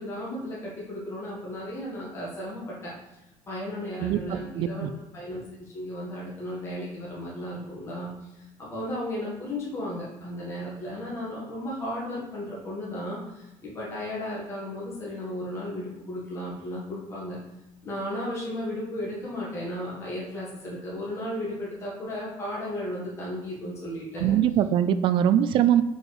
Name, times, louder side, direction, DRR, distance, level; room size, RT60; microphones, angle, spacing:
voice 1, 0.0-2.9 3.5-17.4 17.8-24.3, left 1 dB, 25° left, -6 dB, 1.6 m, -35 dB
voice 2, 4.0-4.9 24.2-25.8, right 10 dB, 50° right, 12 dB, 0.4 m, -22 dB
4.7 x 4.4 x 4.8 m, 0.98 s
cardioid pair, 155°, 11 cm